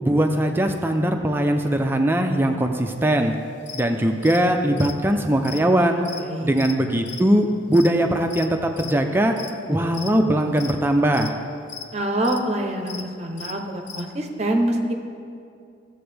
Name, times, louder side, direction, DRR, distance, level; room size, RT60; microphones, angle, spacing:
voice 1, 0.0-3.3 3.7-6.0 6.4-9.3 9.7-11.4, right 1 dB, 10° right, 4 dB, 0.4 m, -20 dB
sound 1, 3.3-3.4 3.7-3.9 4.1-8.5 8.7-9.1 9.4-9.7 9.9-10.3 10.6-11.4 11.7-11.9 12.2-12.4 12.9-13.0 13.3-14.1, left 7 dB, 70° left, 0.6 m, -37 dB
voice 2, 6.1-6.5 11.9-14.9, right 1 dB, 35° right, 3 dB, 0.8 m, -25 dB
13.0 x 7.8 x 3.4 m, 2.4 s
head